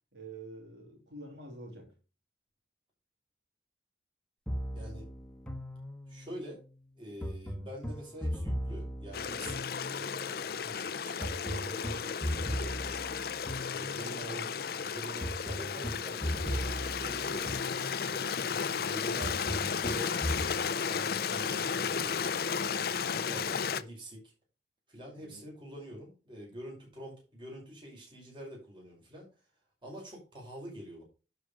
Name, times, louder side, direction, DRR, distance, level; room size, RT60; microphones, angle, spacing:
voice 1, 0.1-1.9 10.5-11.0 14.3-14.5 21.3-22.1 25.2-25.5, right 2 dB, 75° right, 2.9 m, -48 dB
sound 1, 4.5-6.3 7.2-10.3 11.2-14.3 15.2-18.2 19.2-20.6, equal, 5° left, 1.4 m, -38 dB
voice 2, 4.7-5.1 6.1-6.6 7.0-13.0 13.7-14.5 14.8-17.6 18.1-20.3 20.9-24.2 24.9-29.3 29.8-31.0, equal, 25° right, 5.5 m, -46 dB
Stream, 9.1-23.8, left 6 dB, 55° left, 0.5 m, -34 dB
11.5 x 5.1 x 5.1 m
head